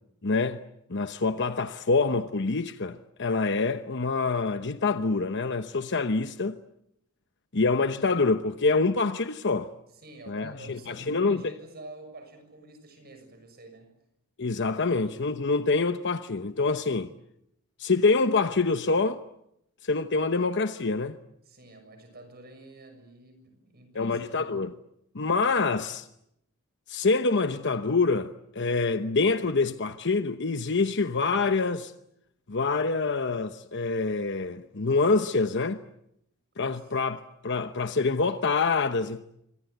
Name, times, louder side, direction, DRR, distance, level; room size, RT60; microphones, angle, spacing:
voice 1, 0.2-0.6 0.9-6.6 7.5-9.7 10.3-11.5 14.4-17.1 17.8-19.2 19.8-21.2 23.9-24.7 25.1-26.1 26.9-31.9 32.5-35.8 36.6-39.2, left 3 dB, 55° left, 1.0 m, -26 dB
voice 2, 9.9-13.9 21.4-24.5, right 2 dB, 45° right, 6.8 m, -48 dB
27.0 x 25.0 x 8.1 m
head